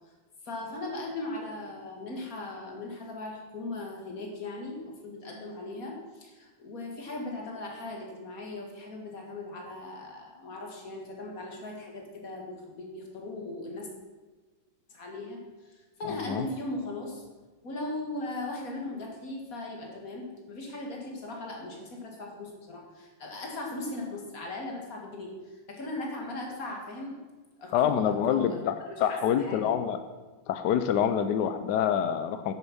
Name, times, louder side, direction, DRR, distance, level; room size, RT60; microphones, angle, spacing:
voice 1, 0.4-13.9 14.9-15.4 15.7-17.2 17.6-27.2 27.6-29.8, left 2 dB, 40° left, 0 dB, 2.3 m, -38 dB
voice 2, 27.7-28.7 29.0-30.0 30.5-32.5, left 9 dB, 80° left, 10 dB, 0.9 m, -26 dB
11.0 x 6.7 x 6.1 m, 1.3 s
omnidirectional pair, 2.4 m